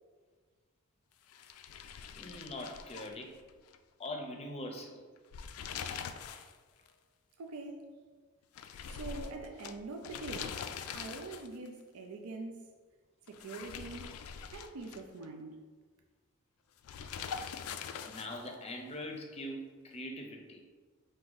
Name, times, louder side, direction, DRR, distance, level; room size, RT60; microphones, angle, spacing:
sound 1, 1.3-3.8 4.1-4.2 5.2-6.6 6.9-7.0 8.6-11.7 13.3-15.3 16.8-18.5, left 7 dB, 80° left, 0.3 m, -43 dB
voice 1, 2.2-3.3 4.0-5.0 18.0-20.6, left 1 dB, 30° left, 2 dB, 0.5 m, -42 dB
voice 2, 7.4-7.9 8.9-10.6 10.9-12.5 13.3-14.2 14.5-15.5, right 3 dB, 80° right, 3 dB, 0.5 m, -44 dB
4.7 x 2.6 x 3.9 m, 1.5 s
head